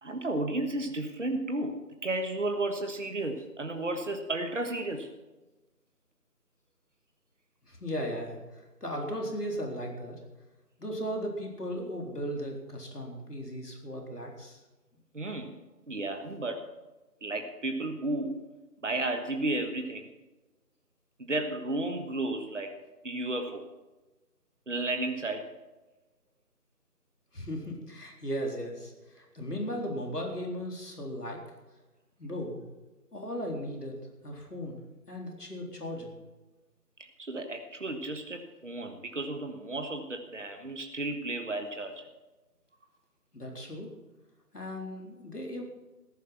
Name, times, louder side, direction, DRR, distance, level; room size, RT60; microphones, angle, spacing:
voice 1, 0.0-5.1 15.1-15.6 15.9-16.6 17.2-18.5 18.8-20.1 21.2-22.7 23.0-23.6 24.7-25.4 37.2-42.1, right 2 dB, 50° right, 5 dB, 1.4 m, -33 dB
voice 2, 7.7-10.2 10.8-14.6 27.3-31.4 32.2-32.6 33.1-34.0 34.2-34.8 35.1-36.1 43.3-43.9 44.5-45.6, equal, 75° left, 0 dB, 3.9 m, -36 dB
14.5 x 11.0 x 5.8 m, 1.1 s
figure-of-eight pair, 165°, 47 cm